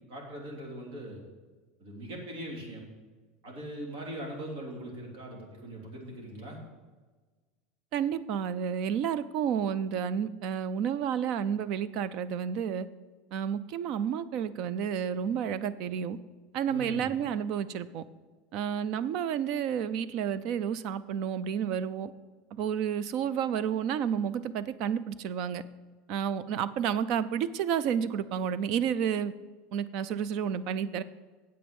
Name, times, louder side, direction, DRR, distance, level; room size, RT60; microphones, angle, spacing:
voice 1, 0.1-1.2 1.8-2.8 3.4-6.6 16.7-17.1, right 1 dB, 65° right, -1 dB, 3.3 m, -40 dB
voice 2, 7.9-12.9 13.3-16.2 16.5-18.0 18.5-22.1 22.5-25.6 26.1-29.3 29.7-31.0, right 8 dB, 40° right, 16 dB, 0.4 m, -30 dB
9.6 x 7.9 x 5.3 m, 1.3 s
supercardioid pair, 175°, 0 cm